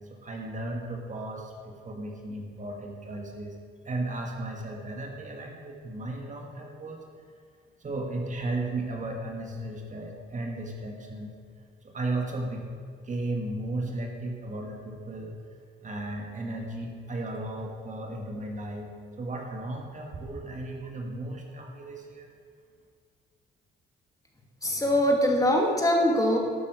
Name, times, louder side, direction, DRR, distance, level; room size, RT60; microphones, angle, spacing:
voice 1, 0.1-3.6 3.8-7.0 7.8-11.4 11.8-12.7 13.0-15.4 15.8-22.3, right 2 dB, 40° right, 1 dB, 2.0 m, -35 dB
voice 2, 24.6-26.4, equal, 15° left, 0 dB, 2.5 m, -22 dB
13.0 x 8.5 x 6.4 m, 2.2 s
cardioid pair, 90°, 20 cm